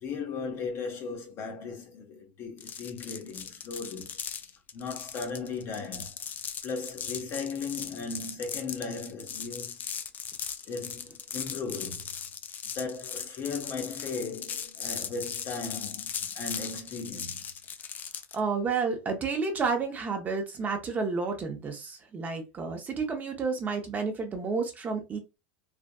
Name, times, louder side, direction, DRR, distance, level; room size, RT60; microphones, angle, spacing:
voice 1, 0.0-6.1 6.6-9.8 10.7-12.1 12.7-17.5, left 4 dB, 45° left, 1.1 m, -37 dB
sound 1, 2.6-18.4, left 7 dB, 30° left, 0.4 m, -38 dB
voice 2, 18.3-25.2, right 4 dB, 25° right, 0.8 m, -30 dB
3.4 x 2.5 x 2.3 m
hypercardioid pair, 100°, 7 cm